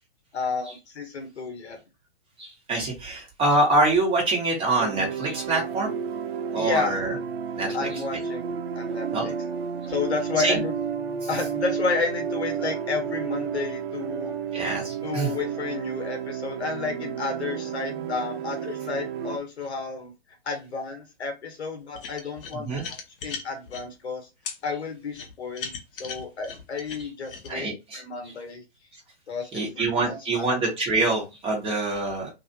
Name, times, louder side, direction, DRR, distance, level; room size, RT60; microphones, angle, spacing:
voice 1, 0.3-1.8 6.5-7.0 7.7-9.3 9.9-10.7 11.3-14.4 15.0-20.1 20.4-24.3 24.6-28.6 29.3-30.6, left 4 dB, 80° left, 4 dB, 1.3 m, -31 dB
voice 2, 2.4-5.9 6.5-7.1 7.6-7.9 9.1-9.3 10.4-10.6 14.5-15.3 22.5-22.9 27.5-28.0 29.5-32.3, right 2 dB, 15° right, -2 dB, 1.4 m, -25 dB
sound 1, 4.8-19.4, right 7 dB, 65° right, 0.6 m, -31 dB
sound 2, 21.9-23.8 24.5-24.6 25.1-27.5, left 5 dB, 55° left, 1.0 m, -37 dB
3.0 x 2.5 x 2.7 m, 0.25 s
hypercardioid pair, 125°, 33 cm